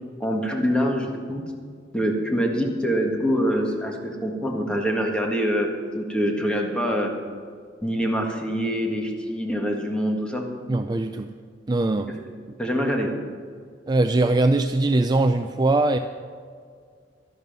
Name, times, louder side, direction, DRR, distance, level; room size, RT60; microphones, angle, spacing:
voice 1, 0.2-1.4 1.9-7.1 7.8-10.4 12.6-13.1, equal, 5° left, 0 dB, 1.6 m, -25 dB
voice 2, 10.7-11.3 11.7-12.1 13.9-16.0, right 2 dB, 25° right, 8 dB, 0.4 m, -21 dB
12.5 x 11.0 x 5.4 m, 2.1 s
head